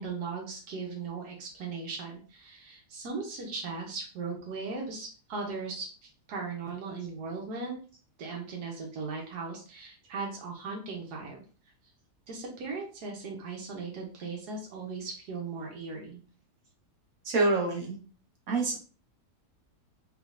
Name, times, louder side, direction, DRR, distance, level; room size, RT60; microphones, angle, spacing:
voice 1, 0.0-7.8 8.2-11.4 12.3-16.2, right 4 dB, 90° right, 0 dB, 1.4 m, -38 dB
voice 2, 17.2-18.0 18.5-18.8, right 3 dB, 65° right, -1 dB, 1.4 m, -26 dB
3.5 x 3.0 x 2.4 m, 0.38 s
omnidirectional pair, 1.7 m